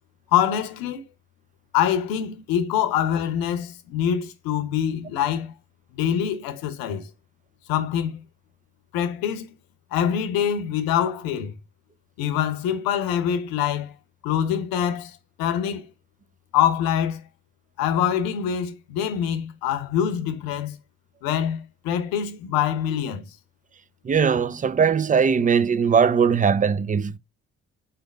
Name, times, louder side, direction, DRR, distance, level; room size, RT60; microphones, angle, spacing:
voice 1, 0.3-1.0 1.7-5.5 5.9-7.1 7.7-8.2 8.9-9.5 9.9-11.6 12.2-13.9 14.2-15.9 16.5-17.2 17.8-20.8 21.2-23.2, left 9 dB, 85° left, 0.8 m, -24 dB
voice 2, 24.0-27.2, right 6 dB, 25° right, 0.4 m, -20 dB
3.9 x 3.3 x 4.0 m
hypercardioid pair, 45°, 34 cm